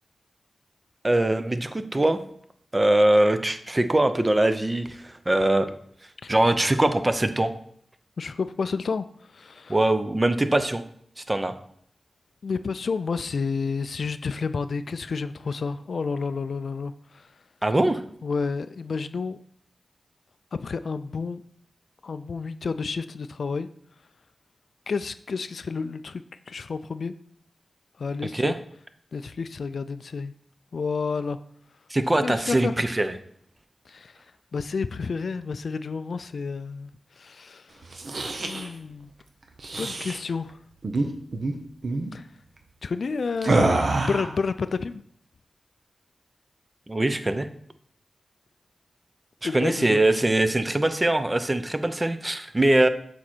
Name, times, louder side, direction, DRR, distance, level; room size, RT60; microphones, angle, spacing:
voice 1, 1.0-2.2 2.7-5.7 6.3-7.5 9.7-10.8 11.3-11.5 17.6-18.0 28.3-28.5 31.9-33.1 46.9-47.5 49.4-52.9, right 1 dB, 25° right, 10 dB, 0.6 m, -22 dB
voice 2, 8.2-9.8 12.4-17.3 18.2-19.4 20.5-21.4 22.0-23.7 24.9-27.1 28.0-28.6 29.1-30.3 30.7-31.4 32.2-32.8 33.9-34.2 34.5-37.8 38.4-39.1 39.8-40.6 42.1-42.3 42.8-45.0 49.4-50.0, left 4 dB, 70° left, 13 dB, 0.3 m, -30 dB
sound 1, 37.8-38.7 39.6-40.2 40.8-41.1 41.3-41.5 41.8-42.1 43.4-44.4, right 2 dB, 65° right, 0.9 m, -25 dB
7.2 x 4.3 x 4.4 m, 0.65 s
wide cardioid pair, 70°, 0 cm